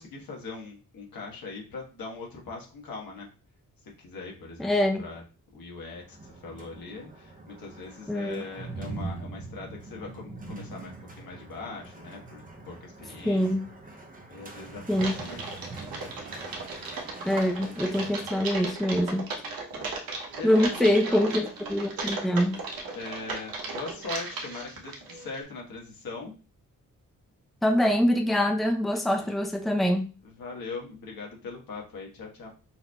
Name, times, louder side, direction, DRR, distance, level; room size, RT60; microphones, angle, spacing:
voice 1, 0.0-3.3 4.0-5.2 5.5-13.4 14.3-15.4 19.7-19.8 20.3-21.4 22.9-26.3 29.1-29.3 30.2-32.5, left 3 dB, 90° left, -1 dB, 1.4 m, -41 dB
voice 2, 4.6-5.0 8.1-8.4 13.2-13.7 14.9-15.2 17.2-19.3 20.4-22.6 27.6-30.1, left 1 dB, ahead, 3 dB, 0.6 m, -24 dB
sound 1, 6.0-18.3, right 3 dB, 25° right, 0.9 m, -43 dB
Typing, 14.9-25.4, right 3 dB, 90° right, 1.0 m, -36 dB
5.7 x 2.7 x 2.3 m, 0.34 s
cardioid pair, 75°, 34 cm